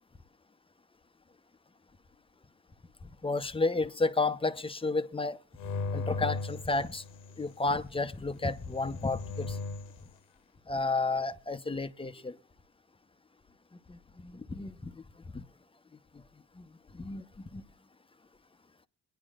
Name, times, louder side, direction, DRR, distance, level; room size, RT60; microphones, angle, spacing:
voice 1, 3.2-5.4 5.9-7.0 7.4-9.6 10.7-12.4 13.9-15.0 15.3-15.4 16.6-16.7 16.9-17.6, left 3 dB, 20° left, 0.9 m, -32 dB
sound 1, 5.6-7.5 8.5-10.0, left 3 dB, 85° left, 1.1 m, -37 dB
21.5 x 10.5 x 2.5 m
cardioid pair, 90°, 30 cm